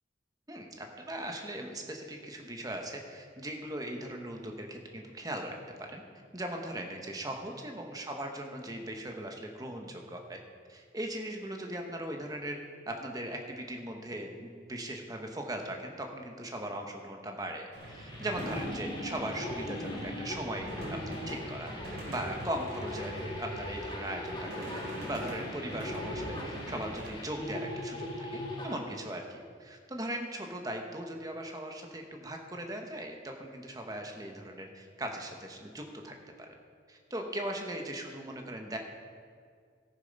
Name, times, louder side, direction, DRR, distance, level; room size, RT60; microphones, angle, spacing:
voice 1, 0.5-6.0 6.3-10.4 10.7-12.6 12.9-36.5 36.9-38.8, right 1 dB, 20° right, 2 dB, 1.0 m, -39 dB
sound 1, 17.7-23.8 24.2-27.1, equal, 55° right, 3.0 m, -43 dB
sound 2, 17.8-28.8, left 1 dB, 25° left, 1.4 m, -40 dB
14.0 x 6.8 x 5.3 m, 2.1 s
head